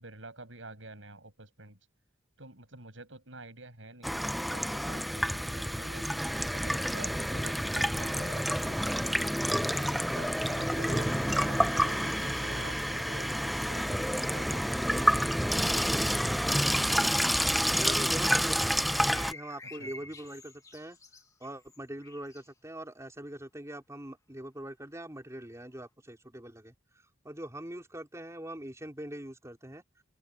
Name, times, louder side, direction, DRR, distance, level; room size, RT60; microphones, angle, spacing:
voice 1, 0.0-1.8 2.4-6.1 6.5-9.2 9.7-15.2 17.9-18.1 19.8-19.9, right 2 dB, 85° right, 6.8 m, -48 dB
Water tap faucet / Sink (filling or washing), 4.0-19.3, equal, ahead, 0.5 m, -29 dB
voice 2, 17.8-21.0 21.4-29.8, right 1 dB, 15° right, 4.6 m, -42 dB
sound 1, 18.8-22.5, left 2 dB, 15° left, 1.8 m, -49 dB
open air
head